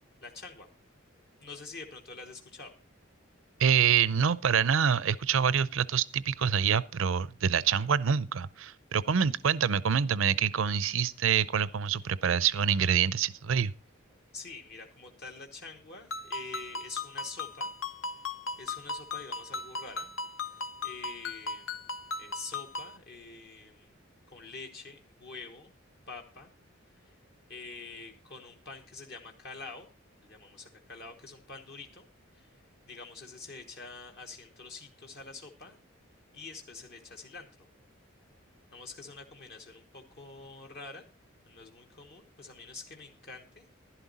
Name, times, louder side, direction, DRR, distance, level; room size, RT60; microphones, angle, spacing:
voice 1, 0.2-0.7 1.4-2.7 14.3-17.7 18.6-20.1 20.5-21.8 22.2-23.9 24.3-25.7 26.1-26.5 26.9-27.1 27.5-29.9 30.2-32.1 32.3-32.5 32.8-35.8 36.3-37.7 38.7-41.1 41.5-43.7, left 4 dB, 55° left, 1.2 m, -46 dB
voice 2, 3.6-13.7, right 7 dB, 75° right, 0.5 m, -26 dB
Ringtone, 16.1-23.0, left 3 dB, 80° left, 1.0 m, -38 dB
11.5 x 11.5 x 4.0 m
head